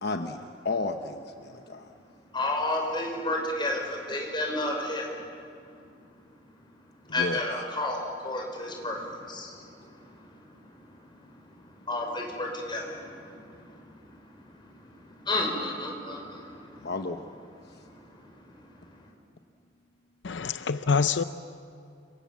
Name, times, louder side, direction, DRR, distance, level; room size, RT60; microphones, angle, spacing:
voice 1, 0.0-1.9 7.1-7.4 16.8-17.3, left 3 dB, 65° left, 5 dB, 1.0 m, -33 dB
voice 2, 2.3-5.3 7.0-16.9 17.6-18.9, left 2 dB, 25° left, 1 dB, 5.6 m, -33 dB
voice 3, 20.2-21.2, left 5 dB, 85° left, 12 dB, 0.6 m, -26 dB
29.5 x 25.5 x 7.4 m, 2.5 s
head